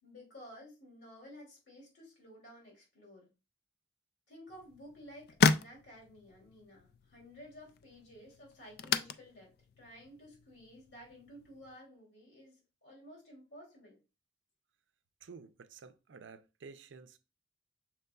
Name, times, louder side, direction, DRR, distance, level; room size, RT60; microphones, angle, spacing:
voice 1, 0.0-3.3 4.3-14.0, equal, 85° left, 2.8 m, -54 dB
sound 1, 4.5-11.8, left 5 dB, 55° left, 0.3 m, -36 dB
voice 2, 15.2-17.2, right 5 dB, 90° right, 0.5 m, -52 dB
6.0 x 3.8 x 2.3 m
head